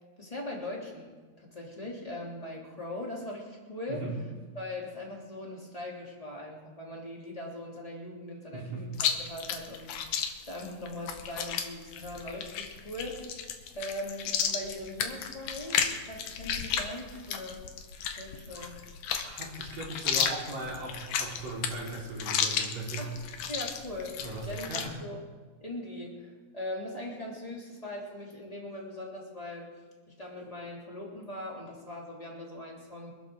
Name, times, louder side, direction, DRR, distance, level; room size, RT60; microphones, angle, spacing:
voice 1, 0.2-1.1 1.4-4.0 4.5-13.2 13.7-17.6 18.1-18.8 23.0-23.1 23.5-24.7 25.0-25.2 25.6-29.7 30.1-33.1, left 1 dB, 10° left, -3 dB, 2.8 m, -40 dB
voice 2, 3.9-4.2 8.5-9.0 18.5-18.7 19.2-23.1 24.2-25.0, right 2 dB, 50° right, -5 dB, 5.4 m, -38 dB
Chewing mastication, 8.9-24.9, left 7 dB, 70° left, 2.6 m, -33 dB
26.0 x 13.0 x 3.9 m, 1.4 s
omnidirectional pair, 4.1 m